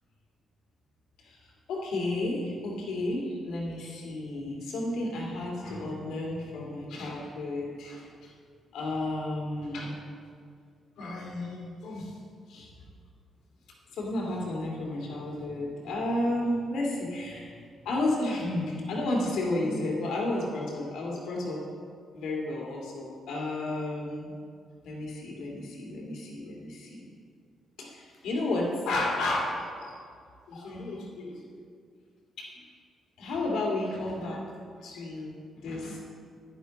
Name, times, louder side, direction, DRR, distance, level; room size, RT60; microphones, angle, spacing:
voice 1, 1.2-8.3 8.7-10.0 11.0-12.2 12.5-12.7 13.9-17.5 17.8-21.6 22.1-24.3 24.8-27.0 27.8-30.0 30.5-31.4 32.4-32.6 33.2-34.4 34.8-36.0, left 2 dB, 80° left, -2 dB, 2.5 m, -32 dB
10.5 x 10.0 x 4.1 m, 2.2 s
supercardioid pair, 60°, 0 cm